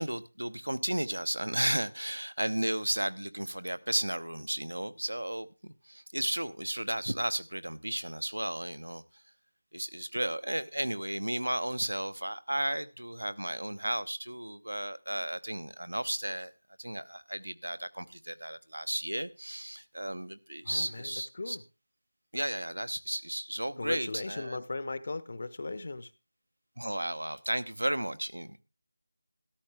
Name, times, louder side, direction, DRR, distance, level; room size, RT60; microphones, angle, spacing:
voice 1, 0.0-9.0 9.7-16.5 16.8-21.6 22.3-24.6 26.8-28.6, right 1 dB, 85° right, 0.9 m, -34 dB
voice 2, 20.6-21.6 23.8-26.1, left 3 dB, 50° left, 0.9 m, -37 dB
13.0 x 12.0 x 3.4 m
figure-of-eight pair, 165°, 0 cm